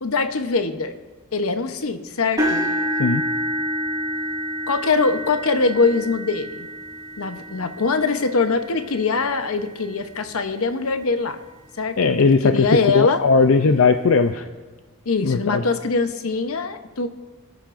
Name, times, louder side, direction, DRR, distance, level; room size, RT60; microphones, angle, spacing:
voice 1, 0.0-0.9 1.3-2.6 4.7-6.7 7.2-11.4 11.8-13.2 15.1-17.1, left 4 dB, 85° left, 8 dB, 0.9 m, -22 dB
sound 1, 2.4-10.4 11.0-11.3 11.7-11.8 13.2-13.3, equal, 20° right, 3.4 m, -29 dB
voice 2, 12.0-12.7 12.9-14.5 15.2-15.6, left 4 dB, 70° left, 8 dB, 0.5 m, -17 dB
26.5 x 12.0 x 2.6 m, 1.3 s
head